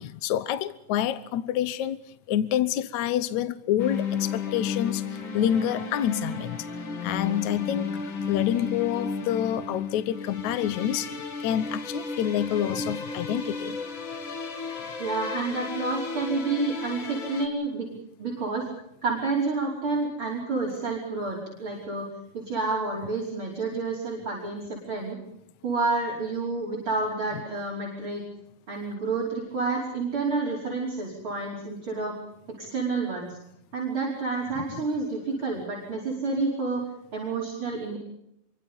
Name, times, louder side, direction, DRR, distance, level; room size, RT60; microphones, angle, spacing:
voice 1, 0.0-2.0 2.3-6.7 7.0-13.8 34.6-34.7, left 11 dB, 65° left, 2.0 m, -28 dB
sound 1, 3.8-17.5, left 5 dB, 35° left, 2.5 m, -33 dB
voice 2, 15.0-17.9 18.2-18.7 19.0-22.1 22.3-25.2 25.6-28.2 28.7-32.1 32.6-33.4 33.7-36.8 37.1-38.0, right 3 dB, 35° right, 5.9 m, -29 dB
28.0 x 24.5 x 5.4 m
omnidirectional pair, 4.2 m